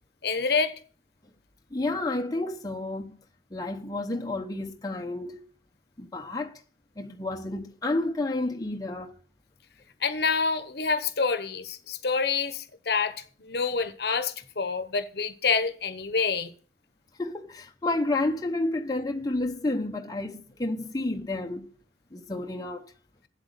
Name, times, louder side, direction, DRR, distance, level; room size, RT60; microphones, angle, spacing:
voice 1, 0.2-0.7 10.0-16.5, left 5 dB, 60° left, 1.0 m, -27 dB
voice 2, 1.7-3.2 3.5-5.4 6.0-6.5 7.0-9.2 17.2-21.7 22.1-22.9, left 2 dB, 20° left, 0.8 m, -30 dB
8.2 x 8.0 x 6.7 m
head